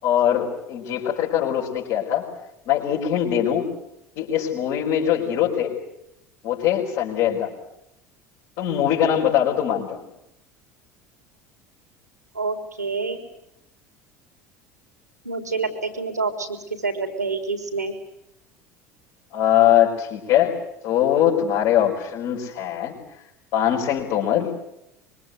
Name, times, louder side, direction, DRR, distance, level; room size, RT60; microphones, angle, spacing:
voice 1, 0.0-2.3 2.7-3.7 4.2-5.7 6.4-7.5 8.6-10.0 19.3-20.6 20.8-22.9 23.5-24.5, left 10 dB, 55° left, -4 dB, 5.4 m, -21 dB
voice 2, 12.3-13.2 15.2-17.9, right 4 dB, 85° right, 7 dB, 3.9 m, -27 dB
25.0 x 23.5 x 8.1 m, 0.81 s
figure-of-eight pair, 70°, 9 cm